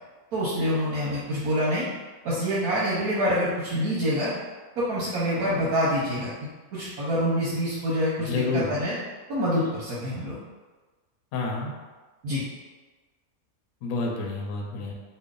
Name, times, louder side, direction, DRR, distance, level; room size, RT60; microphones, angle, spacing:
voice 1, 0.3-1.9 2.2-4.3 4.8-6.3 6.7-8.9 9.3-10.4 12.2-12.4, equal, 80° right, -8 dB, 1.2 m, -26 dB
voice 2, 8.2-8.7 11.3-11.7 13.8-14.9, left 3 dB, 70° left, -1 dB, 1.0 m, -29 dB
3.1 x 2.3 x 3.7 m, 1.3 s
omnidirectional pair, 1.6 m